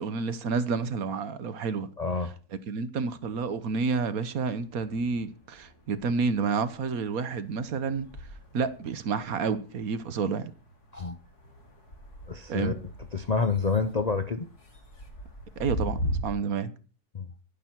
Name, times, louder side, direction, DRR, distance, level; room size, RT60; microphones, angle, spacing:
voice 1, 0.0-1.9 2.7-8.1 8.5-10.4 12.5-12.7 15.6-16.7, right 5 dB, 65° right, 1.4 m, -29 dB
voice 2, 2.0-2.3 10.9-11.2 12.3-12.8 13.1-14.5 17.1-17.3, left 4 dB, 45° left, 0.5 m, -28 dB
sound 1, 3.2-4.2 4.5-16.2, equal, 80° left, 3.4 m, -40 dB
11.0 x 10.0 x 4.5 m
omnidirectional pair, 1.6 m